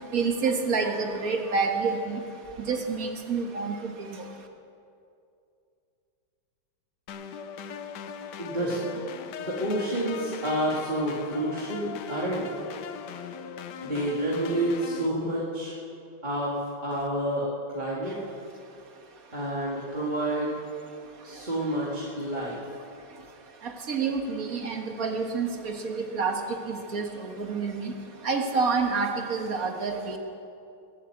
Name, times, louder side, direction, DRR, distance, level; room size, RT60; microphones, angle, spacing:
voice 1, 0.1-2.2 2.7-3.8 23.6-26.4 26.7-27.9 28.2-30.2, right 4 dB, 50° right, 4 dB, 1.7 m, -28 dB
sound 1, 7.1-15.1, left 7 dB, 65° left, 1.2 m, -39 dB
voice 2, 8.4-8.8 9.4-12.6 13.8-15.8 16.2-18.2 19.3-20.6 21.2-22.6, right 1 dB, 25° right, -6 dB, 2.1 m, -29 dB
21.5 x 8.3 x 7.7 m, 2.6 s
omnidirectional pair, 2.2 m